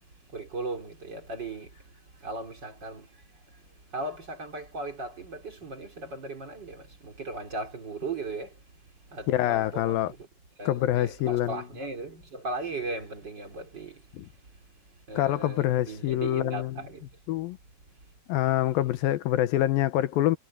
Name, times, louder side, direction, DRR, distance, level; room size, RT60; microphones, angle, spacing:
voice 1, 0.3-1.8 2.2-3.1 3.9-8.5 9.1-10.3 10.6-14.0 15.1-17.0, right 2 dB, 30° right, 3.7 m, -37 dB
voice 2, 9.3-10.1 10.7-11.6 15.2-16.8 17.3-17.6 18.3-20.4, left 13 dB, 80° left, 2.6 m, -25 dB
omnidirectional pair, 4.3 m